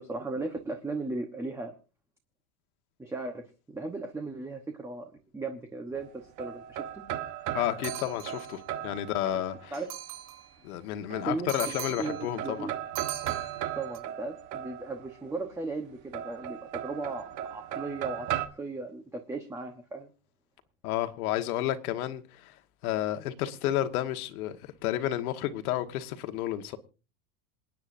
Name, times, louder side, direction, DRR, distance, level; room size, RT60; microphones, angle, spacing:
voice 1, 0.0-1.7 3.0-7.0 9.7-9.9 11.3-12.7 13.8-18.3 18.6-20.1, right 3 dB, 5° right, 0.9 m, -37 dB
sound 1, 6.0-9.9 11.1-11.8 12.1-15.3 16.1-18.5, right 11 dB, 40° right, 1.2 m, -37 dB
voice 2, 7.5-9.7 10.6-12.7 20.8-22.6 22.8-26.8, left 13 dB, 75° left, 1.6 m, -31 dB
sound 2, 7.8-8.6 9.7-10.5 11.5-12.3 13.0-14.0, right 12 dB, 90° right, 3.9 m, -40 dB
27.5 x 9.5 x 2.6 m
supercardioid pair, 150°, 44 cm